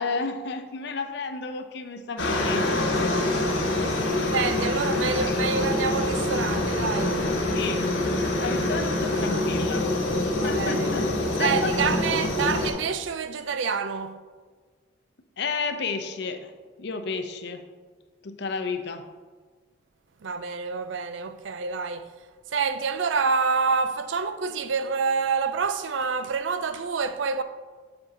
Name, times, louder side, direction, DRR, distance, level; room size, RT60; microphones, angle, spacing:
voice 1, 0.0-3.1 3.7-4.2 7.5-7.9 8.4-9.9 10.4-11.7 15.4-16.5 16.8-17.7 18.2-19.1, left 4 dB, 60° left, 0.6 m, -32 dB
Aircraft, 2.2-12.7, left 1 dB, 90° left, 1.4 m, -25 dB
voice 2, 3.7-7.2 8.6-8.8 10.4-10.9 11.4-14.2 20.2-27.4, right 5 dB, 75° right, 0.5 m, -27 dB
7.9 x 7.0 x 2.8 m
head